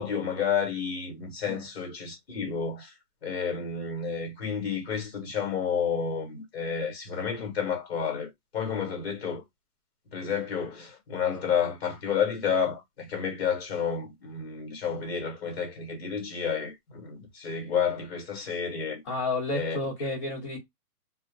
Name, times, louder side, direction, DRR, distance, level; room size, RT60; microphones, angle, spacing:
voice 1, 0.0-2.9 3.2-9.4 10.1-19.0 19.5-19.8, left 7 dB, 40° left, 1.0 m, -30 dB
voice 2, 19.0-20.6, left 2 dB, 15° left, 1.0 m, -31 dB
2.2 x 2.1 x 3.1 m
hypercardioid pair, 175°, 48 cm